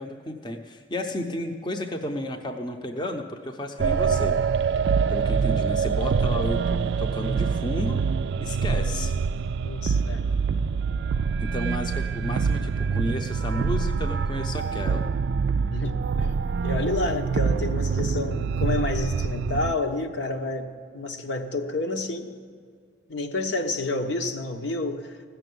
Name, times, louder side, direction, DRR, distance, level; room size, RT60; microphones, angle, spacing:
voice 1, 0.0-4.4 5.1-8.0 8.4-9.1 11.4-15.0, left 1 dB, 25° left, 4 dB, 0.7 m, -32 dB
sound 1, 3.8-19.7, right 5 dB, 65° right, 0.3 m, -25 dB
voice 2, 9.6-10.3 15.7-16.3 16.6-22.3 23.1-25.2, left 2 dB, 70° left, 4 dB, 1.0 m, -29 dB
16.0 x 6.9 x 9.3 m, 2.2 s
head